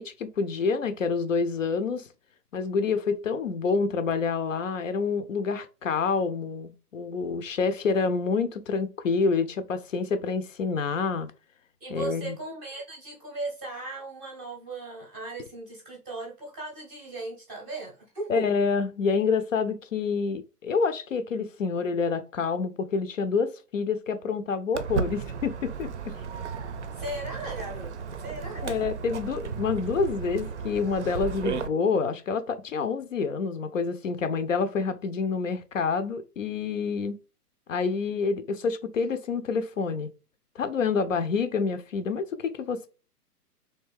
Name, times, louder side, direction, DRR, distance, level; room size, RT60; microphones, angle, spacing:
voice 1, 0.0-2.1 2.5-11.3 11.9-12.3 18.3-26.1 28.6-37.2 37.7-40.1 40.6-42.9, left 5 dB, 55° left, 0.5 m, -27 dB
voice 2, 11.8-18.4 26.9-28.7, right 2 dB, 10° right, 0.7 m, -37 dB
Walk footsteps, 24.7-31.7, right 6 dB, 50° right, 0.5 m, -34 dB
3.2 x 2.7 x 3.3 m
figure-of-eight pair, 125°, 47 cm